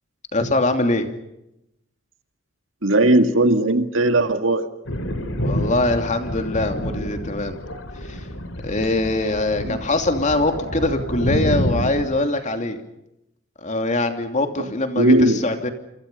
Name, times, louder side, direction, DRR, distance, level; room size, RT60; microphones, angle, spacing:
voice 1, 0.3-1.1 5.4-7.6 8.0-8.3 8.6-12.8 13.6-15.7, left 2 dB, 40° left, 6 dB, 2.9 m, -23 dB
voice 2, 2.8-4.6 9.6-9.8 15.0-15.5, right 1 dB, 70° right, 8 dB, 2.1 m, -17 dB
Thunder, 4.9-12.1, equal, 75° left, 3.6 m, -28 dB
28.0 x 26.5 x 5.5 m, 0.85 s
head